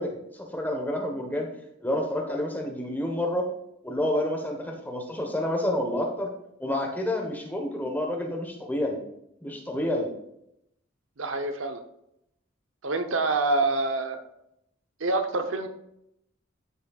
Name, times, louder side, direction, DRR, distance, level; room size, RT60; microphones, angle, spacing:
voice 1, 0.0-1.5 1.8-3.5 3.8-6.3 6.6-9.0 9.4-10.1, left 1 dB, 10° left, 1 dB, 1.2 m, -29 dB
voice 2, 11.2-11.8 12.8-14.2 15.0-15.7, right 2 dB, 80° right, 6 dB, 0.9 m, -26 dB
12.5 x 6.4 x 2.4 m, 0.79 s
head